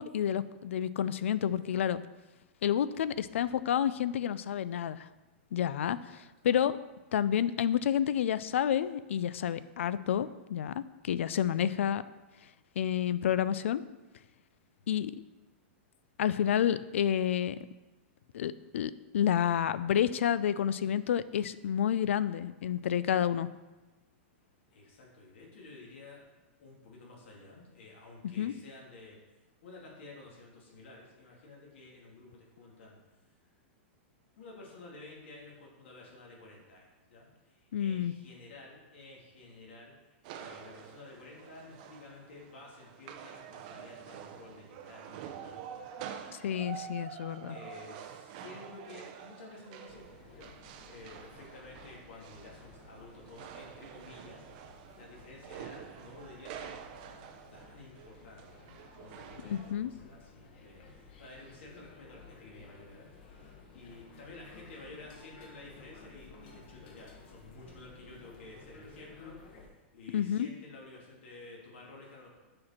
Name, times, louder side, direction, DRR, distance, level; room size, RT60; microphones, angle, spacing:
voice 1, 0.0-2.0 2.6-5.1 5.5-6.8 7.1-12.0 12.8-13.8 14.9-15.2 16.2-17.6 18.3-23.5 28.4-28.5 37.7-38.1 46.4-47.6 59.4-59.9 70.1-70.5, left 9 dB, 85° left, 16 dB, 0.3 m, -29 dB
voice 2, 14.8-15.1 24.7-26.2 26.6-29.2 29.6-33.0 34.4-45.9 47.5-50.0 50.3-50.5 50.9-56.7 57.5-58.6 59.0-72.3, left 2 dB, 70° left, -3 dB, 2.3 m, -52 dB
sound 1, 40.2-59.7, right 9 dB, 40° right, 0.5 m, -48 dB
sound 2, 49.9-69.7, left 3 dB, 50° left, 1.2 m, -55 dB
7.5 x 4.4 x 4.3 m, 1.1 s
supercardioid pair, 165°, 7 cm